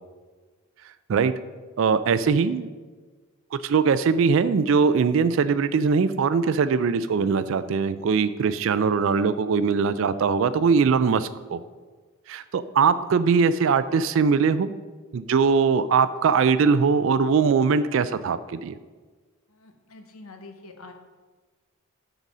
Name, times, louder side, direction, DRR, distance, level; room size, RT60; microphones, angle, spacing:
voice 1, 1.8-2.7 3.6-11.6 12.3-14.7 15.1-18.8, right 5 dB, 60° right, 13 dB, 0.3 m, -21 dB
voice 2, 19.5-20.9, left 3 dB, 80° left, 5 dB, 1.0 m, -45 dB
9.3 x 4.0 x 6.1 m, 1.4 s
head